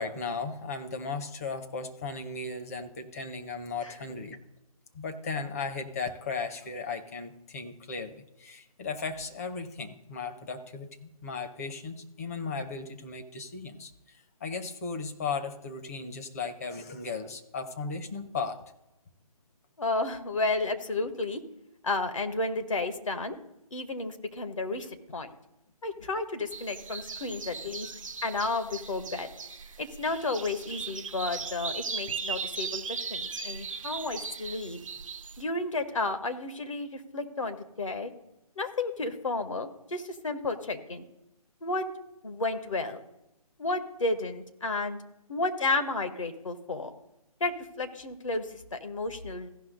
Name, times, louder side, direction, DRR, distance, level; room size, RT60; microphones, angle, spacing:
voice 1, 0.0-4.4 4.9-18.6 27.6-27.8, left 4 dB, 25° left, 6 dB, 0.9 m, -36 dB
voice 2, 19.8-21.4 21.8-23.3 23.7-25.3 25.8-27.9 28.2-29.3 29.8-34.8 35.4-38.1 38.6-41.1 41.6-41.9 42.2-43.0 43.6-45.0 45.3-46.9 47.4-49.5, left 3 dB, 55° left, 7 dB, 1.4 m, -32 dB
sound 1, 26.5-35.4, right 5 dB, 55° right, 0.7 m, -38 dB
16.0 x 5.9 x 3.9 m, 0.91 s
figure-of-eight pair, 150°, 19 cm